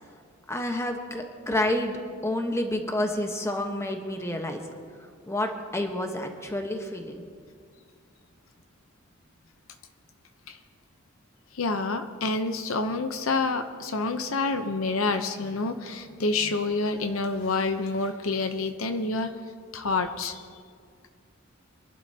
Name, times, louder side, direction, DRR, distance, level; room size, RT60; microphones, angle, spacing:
voice 1, 0.5-4.6 5.3-7.2, left 1 dB, 15° left, 4 dB, 1.2 m, -29 dB
voice 2, 11.5-19.3 19.7-20.4, left 3 dB, 80° left, 8 dB, 0.8 m, -28 dB
27.0 x 11.5 x 2.9 m, 2.1 s
head